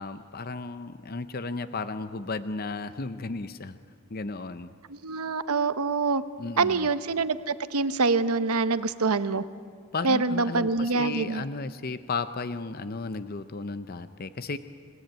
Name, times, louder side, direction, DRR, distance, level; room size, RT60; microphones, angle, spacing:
voice 1, 0.0-3.8 4.1-4.7 6.4-6.9 9.9-14.6, left 3 dB, 40° left, 11 dB, 0.6 m, -34 dB
voice 2, 4.9-6.2 6.6-9.4 10.0-11.4, right 4 dB, 80° right, 12 dB, 1.0 m, -25 dB
30.0 x 17.5 x 9.0 m, 2.1 s
head